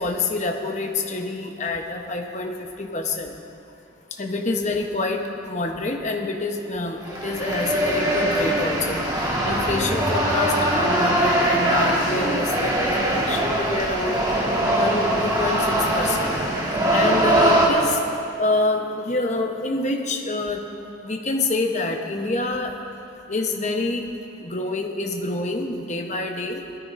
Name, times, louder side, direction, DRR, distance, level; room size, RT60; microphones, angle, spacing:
voice 1, 0.0-3.4 4.1-14.2 14.8-16.4 16.9-18.0 18.4-20.7 21.0-22.8 23.3-24.1 24.4-26.8, left 2 dB, 35° left, 2 dB, 1.0 m, -27 dB
sound 1, 7.0-17.7, right 1 dB, 20° right, 1.6 m, -22 dB
20.0 x 13.5 x 2.6 m, 2.7 s
head